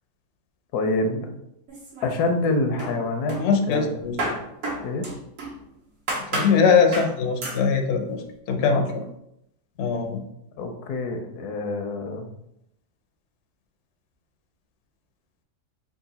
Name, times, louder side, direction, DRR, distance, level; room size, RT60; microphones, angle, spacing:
voice 1, 0.7-1.3 2.0-3.9 4.8-5.1 8.5-8.8 10.6-12.3, left 2 dB, 80° left, 5 dB, 1.2 m, -26 dB
sound 1, 1.7-2.5 2.8-5.6 6.1-6.6 6.9-7.1 7.4-7.6, right 2 dB, 70° right, 1.6 m, -31 dB
voice 2, 3.4-4.4 6.3-9.0 9.8-10.2, left 5 dB, 65° left, 3 dB, 0.7 m, -22 dB
3.9 x 2.4 x 3.9 m, 0.80 s
omnidirectional pair, 1.7 m